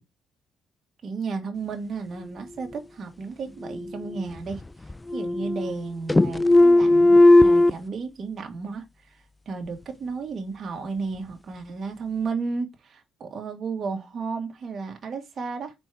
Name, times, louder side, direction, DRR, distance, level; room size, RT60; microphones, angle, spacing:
voice 1, 1.0-4.6 5.1-8.8 9.1-15.7, right 4 dB, 50° right, 1.7 m, -33 dB
sound 1, 3.6-4.6 4.9-5.8 6.1-7.7, left 2 dB, 15° left, 0.3 m, -17 dB
4.5 x 4.3 x 4.7 m
cardioid pair, 90°, 0 cm